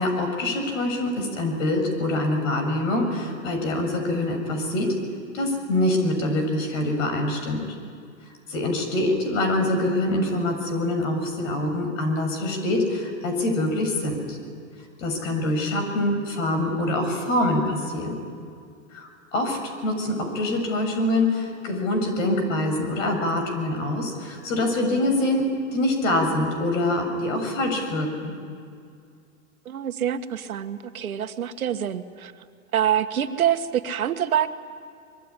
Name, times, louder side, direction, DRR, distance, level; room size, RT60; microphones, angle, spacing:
voice 1, 0.0-4.9 5.3-7.6 8.5-14.4 15.0-18.2 18.9-25.5 25.7-28.3, left 1 dB, 65° left, 5 dB, 7.2 m, -25 dB
voice 2, 29.7-32.3 32.7-34.5, right 10 dB, 90° right, 8 dB, 1.7 m, -25 dB
24.5 x 22.5 x 9.9 m, 2.3 s
hypercardioid pair, 125°, 41 cm